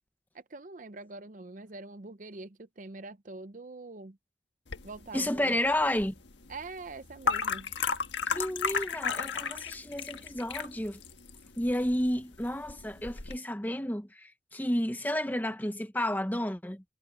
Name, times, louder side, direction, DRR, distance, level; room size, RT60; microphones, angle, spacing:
voice 1, 0.3-4.2 4.8-5.6 6.5-7.7, right 3 dB, 45° right, 0.7 m, -44 dB
sound 1, 4.7-13.4, left 5 dB, 80° left, 1.5 m, -35 dB
voice 2, 5.1-6.1 8.3-11.0 11.6-16.8, left 1 dB, 10° left, 1.0 m, -31 dB
head